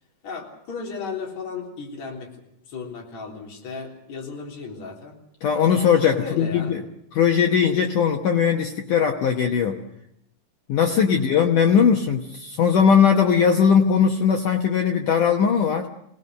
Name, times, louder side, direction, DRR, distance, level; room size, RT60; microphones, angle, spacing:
voice 1, 0.2-5.2 6.2-6.8 11.1-11.5, left 5 dB, 40° left, -1 dB, 4.4 m, -35 dB
voice 2, 5.4-6.8 7.1-9.8 10.7-15.9, left 7 dB, 70° left, 3 dB, 1.9 m, -19 dB
26.0 x 18.5 x 6.7 m, 0.76 s
omnidirectional pair, 5.1 m